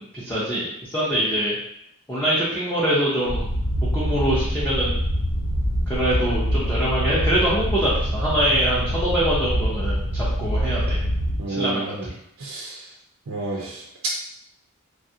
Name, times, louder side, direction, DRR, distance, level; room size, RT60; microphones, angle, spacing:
voice 1, 0.0-1.6 2.1-3.5 3.8-4.9 5.9-11.0 11.5-11.9, equal, 10° left, -9 dB, 0.6 m, -24 dB
sound 1, 3.3-11.4, equal, 55° left, 0.6 m, -25 dB
voice 2, 11.4-12.1 12.4-12.8 13.3-13.8, right 2 dB, 60° right, -2 dB, 0.5 m, -30 dB
3.2 x 2.4 x 2.7 m, 0.74 s
head